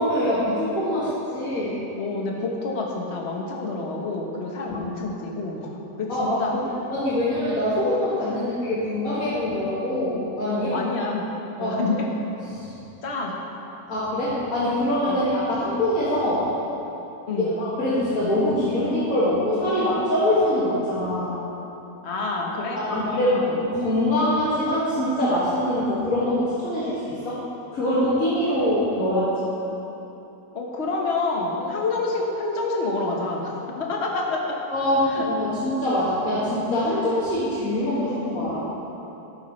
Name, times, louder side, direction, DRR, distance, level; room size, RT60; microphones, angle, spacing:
voice 1, 0.0-1.8 4.7-4.8 6.1-6.4 6.9-10.7 11.6-11.8 12.5-12.7 13.9-16.5 17.6-21.4 22.8-23.3 23.6-27.4 27.7-29.3 34.7-38.7, left 1 dB, 65° left, -10 dB, 2.5 m, -24 dB
voice 2, 2.0-5.7 6.0-6.6 8.3-8.5 10.5-11.3 11.6-12.1 13.0-13.3 15.1-15.2 17.3-17.5 22.0-23.6 29.0-29.5 30.5-34.6 35.1-35.3, left 3 dB, 45° left, -1 dB, 1.5 m, -28 dB
13.5 x 12.0 x 3.2 m, 3.0 s
omnidirectional pair, 1.6 m